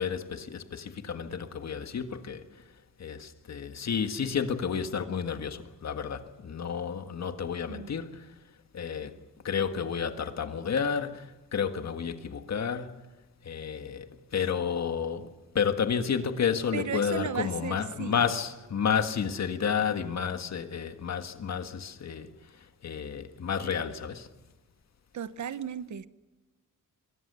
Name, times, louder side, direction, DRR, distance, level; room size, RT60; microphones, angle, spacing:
voice 1, 0.0-2.6 3.0-8.3 8.7-9.2 9.4-13.0 13.4-15.3 15.5-24.3, left 7 dB, 50° left, 1.7 m, -31 dB
voice 2, 16.7-18.2 25.1-26.1, right 8 dB, 60° right, 0.9 m, -35 dB
26.5 x 22.5 x 6.9 m
wide cardioid pair, 170°, 33 cm